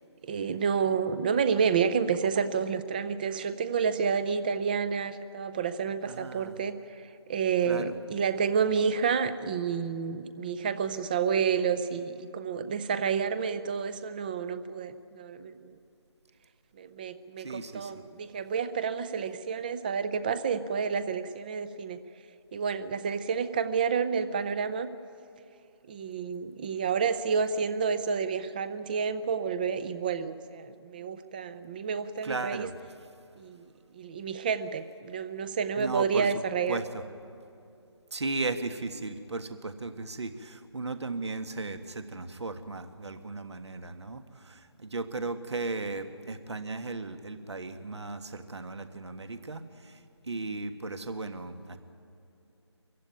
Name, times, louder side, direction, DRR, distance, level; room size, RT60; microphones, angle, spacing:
voice 1, 0.2-6.8 7.3-15.8 16.8-22.0 22.5-24.9 25.9-32.7 33.4-33.7 33.9-36.8, right 6 dB, 20° right, 13 dB, 0.6 m, -29 dB
voice 2, 6.0-6.6 7.6-7.9 17.4-17.9 32.2-32.7 35.8-36.3 36.7-37.0 38.1-51.8, right 3 dB, 70° right, 9 dB, 1.6 m, -36 dB
24.0 x 15.0 x 9.3 m, 2.6 s
figure-of-eight pair, 155°, 15 cm